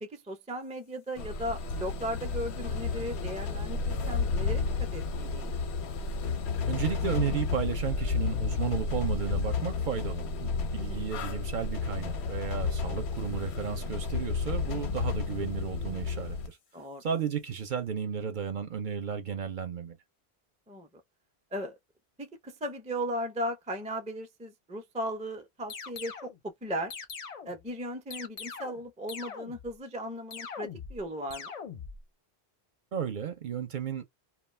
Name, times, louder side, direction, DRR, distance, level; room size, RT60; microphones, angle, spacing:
voice 1, 0.0-5.5 10.8-11.1 16.7-17.2 20.7-20.9 21.5-21.8 22.2-27.0 27.4-31.5, equal, 10° right, 0.3 m, -37 dB
sound 1, 1.2-16.5, left 4 dB, 85° left, 0.9 m, -32 dB
voice 2, 6.7-16.6 17.0-20.0 32.9-34.0, right 8 dB, 55° right, 0.7 m, -33 dB
sound 2, 25.7-26.4 26.9-27.6 28.1-28.8 29.1-29.7 30.3-31.0 31.3-32.0, left 6 dB, 45° left, 0.5 m, -42 dB
2.3 x 2.2 x 3.1 m
omnidirectional pair, 1.1 m